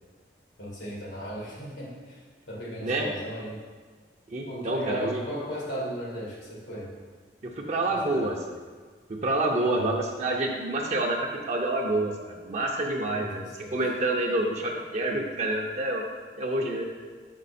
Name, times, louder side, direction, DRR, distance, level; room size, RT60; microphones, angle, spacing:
voice 1, 0.6-2.2 2.5-3.6 4.5-6.9 7.9-8.3 9.6-9.9 13.0-13.8, equal, 90° left, -5 dB, 1.9 m, -36 dB
voice 2, 4.3-5.2 7.6-8.3 9.1-11.2 11.5-16.0 16.4-16.8, right 2 dB, 40° right, 0 dB, 0.5 m, -28 dB
5.5 x 5.3 x 4.2 m, 1.5 s
head